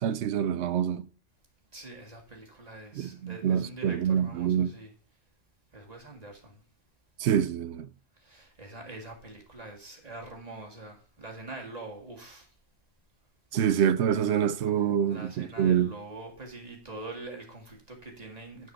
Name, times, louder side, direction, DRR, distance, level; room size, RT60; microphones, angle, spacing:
voice 1, 0.0-1.1 2.9-4.7 7.2-7.9 13.5-15.9, right 9 dB, 70° right, 0.8 m, -26 dB
voice 2, 1.7-4.9 5.7-6.6 8.2-12.5 15.1-18.7, right 2 dB, 30° right, 1.9 m, -44 dB
9.6 x 4.7 x 5.8 m
omnidirectional pair, 1.3 m